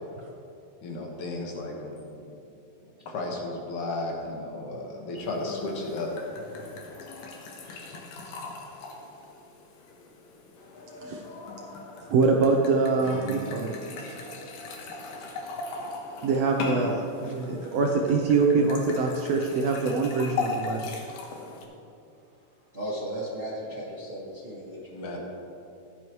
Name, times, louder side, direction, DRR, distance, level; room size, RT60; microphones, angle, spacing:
voice 1, 0.8-2.4 3.1-6.4 24.9-25.2, left 2 dB, 70° left, -1 dB, 2.8 m, -34 dB
sound 1, 5.2-21.6, left 4 dB, 85° left, 2.8 m, -39 dB
voice 2, 12.1-14.2 16.2-20.9, right 4 dB, 75° right, 1 dB, 1.6 m, -24 dB
Acoustic guitar / Strum, 13.0-16.3, equal, 55° left, 3.7 m, -44 dB
voice 3, 22.7-25.2, equal, 25° right, -6 dB, 1.2 m, -36 dB
15.0 x 11.0 x 3.1 m, 2.6 s
omnidirectional pair, 3.5 m